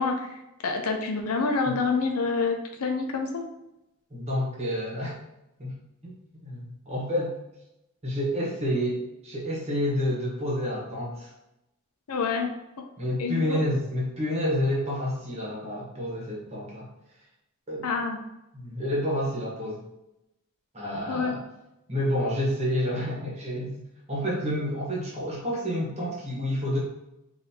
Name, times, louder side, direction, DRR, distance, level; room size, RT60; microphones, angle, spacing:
voice 1, 0.0-3.5 12.1-12.5 13.2-13.6 17.8-18.2 21.1-21.4, left 4 dB, 85° left, 3 dB, 0.6 m, -27 dB
voice 2, 4.1-5.2 5.6-5.8 6.0-6.1 6.4-7.4 8.0-11.3 13.0-16.9 17.7-17.9 18.5-19.8 20.7-21.4 21.9-26.8, equal, 30° right, -5 dB, 1.2 m, -29 dB
4.0 x 2.7 x 2.8 m, 0.88 s
head